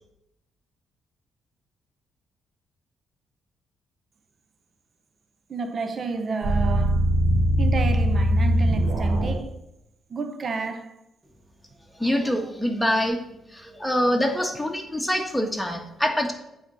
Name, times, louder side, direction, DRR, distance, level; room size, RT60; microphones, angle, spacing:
voice 1, 5.5-7.1 7.6-9.5 10.1-10.9, right 4 dB, 45° right, 0.6 m, -30 dB
sound 1, 6.4-9.3, equal, 90° right, 2.1 m, -21 dB
voice 2, 12.0-13.2 13.5-16.3, equal, 5° left, 1.4 m, -25 dB
8.1 x 4.2 x 6.2 m
cardioid pair, 90°, 0 cm